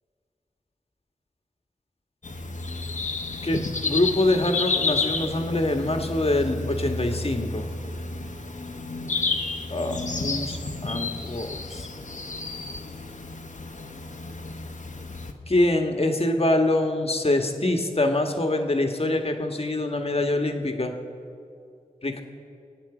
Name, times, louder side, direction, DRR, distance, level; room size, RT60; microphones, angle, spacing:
sound 1, 2.2-15.3, left 3 dB, 60° left, 1.1 m, -31 dB
voice 1, 3.4-7.6 9.7-11.9 15.5-20.9 22.0-22.2, left 1 dB, 45° left, 4 dB, 1.5 m, -25 dB
23.0 x 8.9 x 5.0 m, 2.6 s
cardioid pair, 40°, 15 cm